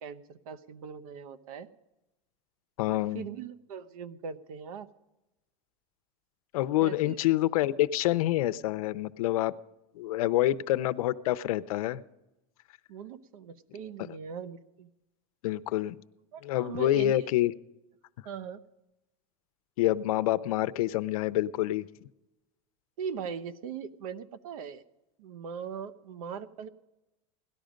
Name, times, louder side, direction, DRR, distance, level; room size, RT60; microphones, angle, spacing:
voice 1, 0.0-1.7 2.9-4.9 6.8-7.2 12.9-14.9 16.3-17.2 18.2-18.6 23.0-24.8 25.2-26.7, right 6 dB, 90° right, 15 dB, 0.9 m, -40 dB
voice 2, 2.8-3.2 6.5-9.5 10.0-12.0 15.4-16.0 16.4-17.5 19.8-21.9, left 14 dB, 85° left, 14 dB, 0.6 m, -27 dB
17.5 x 12.0 x 5.1 m, 0.98 s
supercardioid pair, 150°, 18 cm